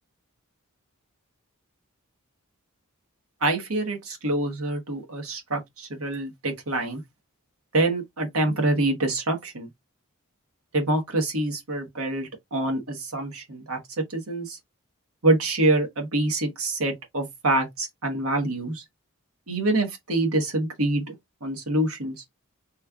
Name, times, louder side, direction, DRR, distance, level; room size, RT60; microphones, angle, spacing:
voice 1, 3.4-7.0 7.7-9.7 10.7-13.8 14.1-14.6 15.2-18.8 19.5-21.1 21.4-22.1, right 2 dB, 70° right, 1.1 m, -26 dB
3.1 x 2.3 x 3.6 m
head